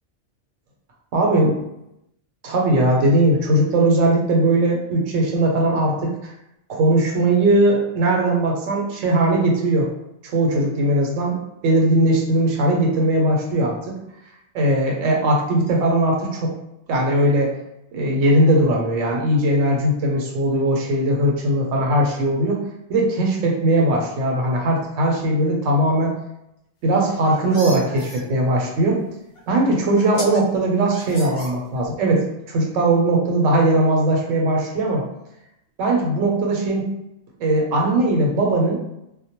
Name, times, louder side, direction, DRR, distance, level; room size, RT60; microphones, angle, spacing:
voice 1, 1.1-1.5 2.4-6.3 6.7-9.9 10.2-11.4 11.6-14.0 14.5-16.5 16.9-17.5 17.9-22.6 22.9-26.2 26.8-29.0 29.5-35.0 35.8-36.8 37.4-38.8, right 1 dB, 85° right, -1 dB, 0.9 m, -19 dB
sound 1, 26.9-28.2 29.4-29.5 30.0-30.4 30.9-32.0, left 1 dB, 60° left, 0.5 m, -36 dB
2.1 x 2.1 x 2.8 m, 0.85 s
omnidirectional pair, 1.3 m